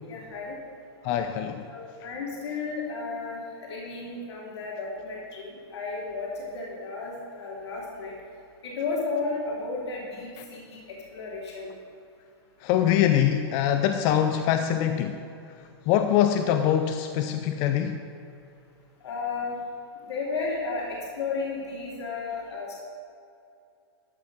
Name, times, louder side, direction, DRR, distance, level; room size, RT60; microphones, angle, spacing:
voice 1, 0.0-0.6 1.7-3.4 3.7-8.1 8.6-11.7 19.0-19.6 20.1-22.8, left 4 dB, 75° left, -3 dB, 2.8 m, -33 dB
voice 2, 1.0-1.7 10.4-10.5 12.6-15.2 15.9-18.0, left 10 dB, 30° left, 7 dB, 0.4 m, -23 dB
13.0 x 6.0 x 6.1 m, 2.5 s
hypercardioid pair, 155°, 14 cm